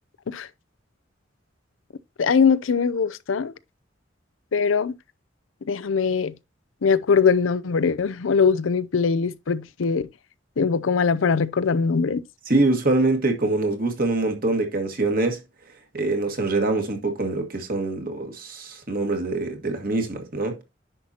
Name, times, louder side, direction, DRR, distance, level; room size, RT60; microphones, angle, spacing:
voice 1, 2.2-3.5 4.5-4.9 5.7-6.3 6.8-10.1 10.6-12.2, left 5 dB, 85° left, 0.5 m, -21 dB
voice 2, 12.5-15.4 15.9-20.6, right 2 dB, 50° right, 1.8 m, -24 dB
10.0 x 5.7 x 2.8 m
head